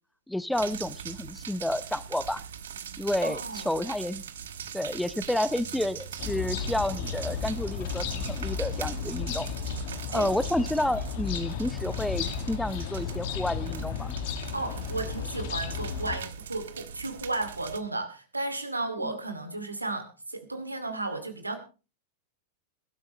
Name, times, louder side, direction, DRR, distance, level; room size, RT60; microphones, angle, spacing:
voice 1, 0.3-2.4 3.0-4.2 4.7-9.5 10.1-14.2 19.0-19.1, left 1 dB, 5° left, 15 dB, 0.8 m, -30 dB
sound 1, 0.5-17.8, right 8 dB, 65° right, 1.3 m, -41 dB
voice 2, 3.2-3.7 10.1-10.3 14.3-21.6, right 2 dB, 85° right, 8 dB, 2.4 m, -34 dB
sound 2, 6.2-16.2, left 6 dB, 50° left, 2.0 m, -34 dB
21.5 x 12.5 x 3.1 m, 0.34 s
figure-of-eight pair, 90°, 0 cm